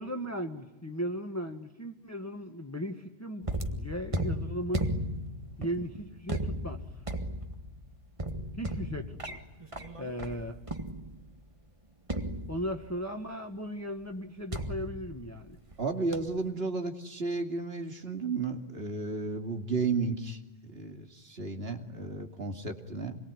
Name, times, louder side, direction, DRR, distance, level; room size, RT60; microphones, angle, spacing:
voice 1, 0.0-4.9 5.6-6.8 8.6-9.4 10.0-10.6 12.5-15.6, equal, 15° left, 4 dB, 1.6 m, -37 dB
sound 1, 3.4-11.4 12.1-13.1 14.5-15.8 16.1-16.5, right 1 dB, 30° right, 1.9 m, -36 dB
voice 2, 15.8-23.2, right 4 dB, 75° right, 5 dB, 2.8 m, -33 dB
27.5 x 22.5 x 9.7 m, 1.0 s
omnidirectional pair, 1.0 m